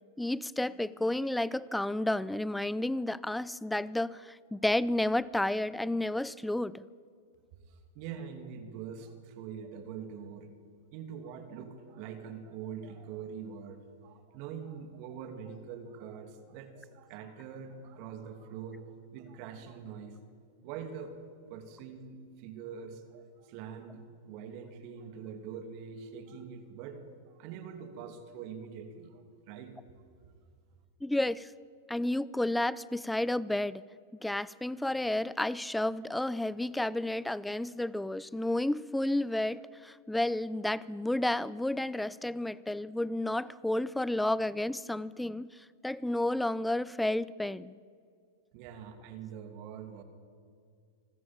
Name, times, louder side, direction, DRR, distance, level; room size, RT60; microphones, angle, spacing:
voice 1, 0.2-6.8 31.0-31.5 31.9-33.8 34.2-45.5 45.8-47.8, left 1 dB, 5° left, 0.5 m, -31 dB
voice 2, 7.7-10.5 10.9-20.2 20.6-21.1 21.5-29.8 48.5-50.0, right 7 dB, 55° right, 2.7 m, -44 dB
25.5 x 14.0 x 8.9 m
hypercardioid pair, 110°, 0 cm